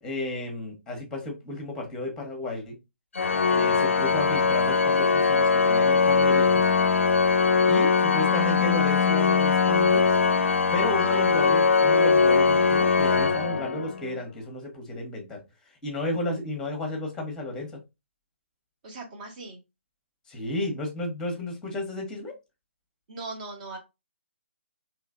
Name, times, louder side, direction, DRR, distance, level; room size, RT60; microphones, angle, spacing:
voice 1, 0.0-2.7 3.5-6.6 7.7-10.1 10.7-15.4 15.8-17.8 20.3-22.3, left 2 dB, 5° left, 1.0 m, -32 dB
Organ, 3.2-14.1, left 5 dB, 75° left, 0.4 m, -21 dB
voice 2, 7.6-7.9 10.9-11.2 18.8-19.6 23.1-23.8, right 3 dB, 40° right, 1.3 m, -39 dB
3.1 x 2.9 x 2.5 m
figure-of-eight pair, 140°, 7 cm